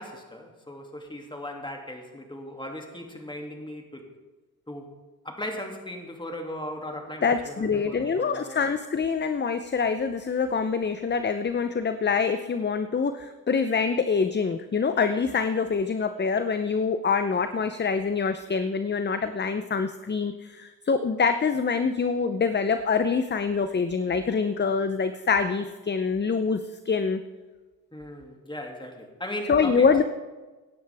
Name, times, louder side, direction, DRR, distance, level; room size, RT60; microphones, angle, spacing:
voice 1, 0.0-4.0 4.7-4.9 5.2-8.6 27.9-29.9, left 1 dB, 15° left, 2 dB, 2.5 m, -37 dB
voice 2, 7.2-26.6 26.9-27.2 29.5-30.0, left 5 dB, 30° left, 10 dB, 0.7 m, -25 dB
16.5 x 10.0 x 3.5 m, 1.2 s
cardioid pair, 55°, 35 cm